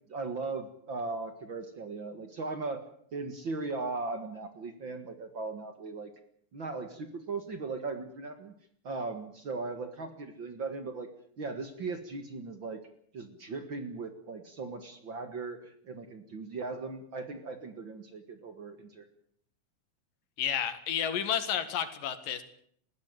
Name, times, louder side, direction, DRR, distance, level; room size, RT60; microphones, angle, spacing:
voice 1, 0.1-2.8 3.1-6.1 6.5-8.5 8.8-11.1 11.4-12.8 13.1-19.1, right 3 dB, 45° right, 8 dB, 2.0 m, -38 dB
voice 2, 20.4-22.4, left 9 dB, 85° left, 11 dB, 3.5 m, -31 dB
20.0 x 15.5 x 9.1 m, 0.65 s
omnidirectional pair, 3.8 m